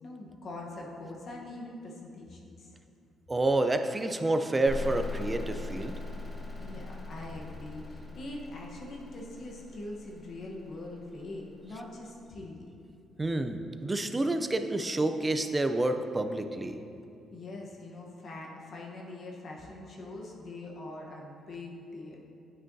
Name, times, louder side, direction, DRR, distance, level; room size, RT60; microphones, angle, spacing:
voice 1, 0.0-2.7 6.5-12.7 17.3-22.2, left 2 dB, 55° left, -1 dB, 1.0 m, -43 dB
voice 2, 3.3-5.9 13.2-16.8, right 2 dB, 20° right, 7 dB, 0.4 m, -29 dB
sound 1, 4.7-12.2, left 3 dB, 30° left, 0.8 m, -41 dB
8.8 x 6.2 x 2.7 m, 2.6 s
cardioid pair, 90°, 0 cm